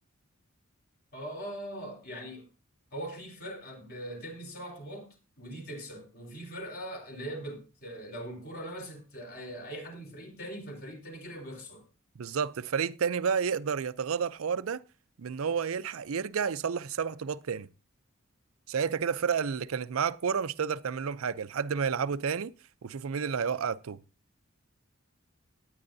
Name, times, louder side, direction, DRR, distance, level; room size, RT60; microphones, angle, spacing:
voice 1, 1.1-2.5 2.9-11.8, right 1 dB, 50° left, 4.0 m, -41 dB
voice 2, 12.2-14.8 15.2-17.7 18.7-22.5 22.8-24.0, right 6 dB, 85° right, 0.5 m, -30 dB
18.5 x 9.7 x 2.7 m
head